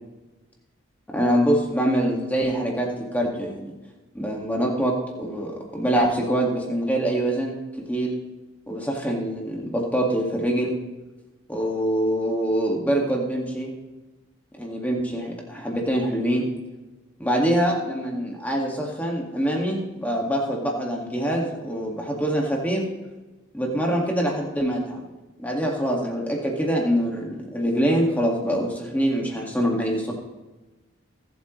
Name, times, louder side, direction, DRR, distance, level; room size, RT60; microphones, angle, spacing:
voice 1, 1.1-3.7 4.2-8.1 8.7-10.7 11.5-13.7 14.5-16.5 17.2-22.9 23.5-25.0 25.4-30.1, equal, 10° left, 0 dB, 1.8 m, -24 dB
23.0 x 7.9 x 3.1 m, 1.1 s
head